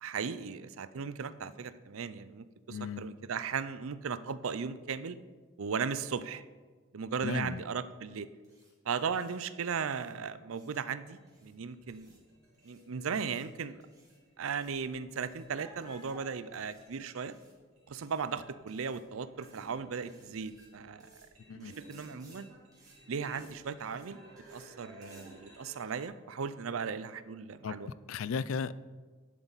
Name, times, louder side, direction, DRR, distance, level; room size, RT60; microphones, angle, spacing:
voice 1, 0.0-5.2 5.6-6.4 6.9-8.3 8.9-12.1 12.6-13.8 14.4-17.3 17.9-21.1 21.5-22.5 23.1-24.2 24.5-27.9, right 6 dB, 70° right, 14 dB, 0.5 m, -37 dB
voice 2, 2.7-3.0 7.2-7.6 21.5-21.7 27.6-27.8 28.1-28.8, left 6 dB, 70° left, 17 dB, 0.4 m, -35 dB
sound 1, 8.4-8.7 9.1-9.4 9.9-10.1 10.5-10.8 11.3-11.5 11.9-12.2 12.5-12.8 13.1-13.5 13.8-14.2 14.5-14.8 15.2-15.4 15.8-16.1 16.5-16.8 17.3-17.5 17.9-18.3 18.7-19.0 19.4-19.7 20.0-20.7 21.0-21.3 21.6-22.4 22.7-23.0 23.3-23.5 23.8-24.1 24.4-24.7 25.0-25.3, right 3 dB, 20° right, 2.7 m, -63 dB
sound 2, 11.0-26.1, right 1 dB, 90° right, 3.3 m, -56 dB
11.0 x 8.0 x 4.1 m, 1.4 s
head